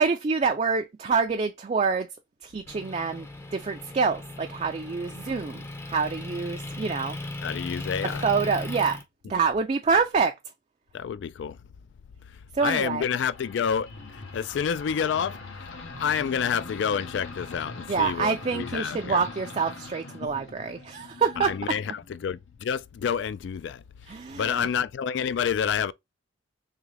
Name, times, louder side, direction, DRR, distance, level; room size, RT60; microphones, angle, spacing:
voice 1, 0.0-2.1 2.4-5.6 5.9-7.2 8.2-9.0 9.3-10.3 12.6-13.0 17.9-21.5 24.1-24.7, right 5 dB, 35° right, 0.4 m, -26 dB
Motor vehicle (road) / Engine, 2.7-9.0, left 2 dB, 15° left, 0.6 m, -37 dB
voice 2, 7.4-8.3 10.9-11.6 12.6-15.7 16.0-19.2 21.4-23.8 24.3-25.9, left 7 dB, 65° left, 0.3 m, -29 dB
sound 1, 13.1-22.5, left 3 dB, 85° left, 1.2 m, -42 dB
3.7 x 3.1 x 3.3 m
head